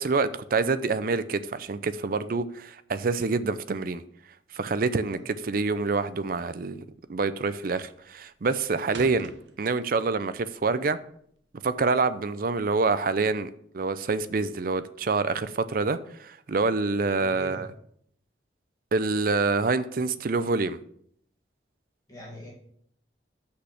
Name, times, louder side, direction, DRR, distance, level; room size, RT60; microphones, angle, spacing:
voice 1, 0.0-4.0 4.5-9.3 9.6-11.0 11.6-13.5 13.7-17.7 18.9-20.8, right 4 dB, 50° right, 13 dB, 0.5 m, -26 dB
sound 1, 7.1-7.5 7.9-10.2 10.5-12.0, right 4 dB, 85° right, 0.8 m, -46 dB
voice 2, 17.2-17.7 22.1-22.5, left 1 dB, 20° left, -4 dB, 1.8 m, -42 dB
6.3 x 5.7 x 5.8 m, 0.67 s
head